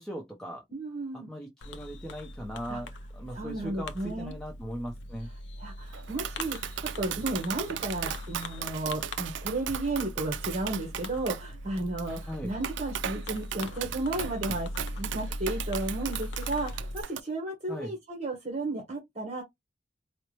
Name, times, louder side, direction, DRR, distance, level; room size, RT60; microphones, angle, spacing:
voice 1, 0.0-0.6 1.1-5.3 12.3-12.5 17.7-17.9, equal, 5° left, 0.7 m, -39 dB
voice 2, 0.7-1.3 2.7-2.8 3.3-4.3 5.6-14.7 14.9-19.4, right 2 dB, 35° right, 1.1 m, -33 dB
Fireworks, 1.6-17.0, left 1 dB, 80° left, 0.5 m, -40 dB
Tap, 5.9-17.2, right 9 dB, 80° right, 0.4 m, -37 dB
4.5 x 2.1 x 3.1 m
head